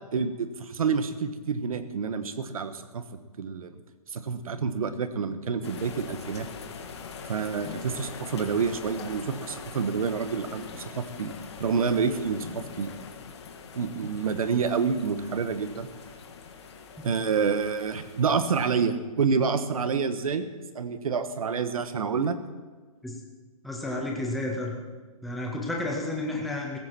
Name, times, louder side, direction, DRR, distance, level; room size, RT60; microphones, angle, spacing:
voice 1, 0.1-3.0 3.4-3.8 4.1-6.5 7.3-11.3 11.6-12.9 13.7-15.9 17.0-22.4, right 5 dB, 65° right, 11 dB, 1.3 m, -28 dB
sound 1, 5.6-18.8, left 6 dB, 45° left, 1.6 m, -43 dB
voice 2, 23.6-24.8 25.2-26.8, left 2 dB, ahead, -1 dB, 0.4 m, -31 dB
16.5 x 15.0 x 4.4 m, 1.4 s
hypercardioid pair, 170°, 19 cm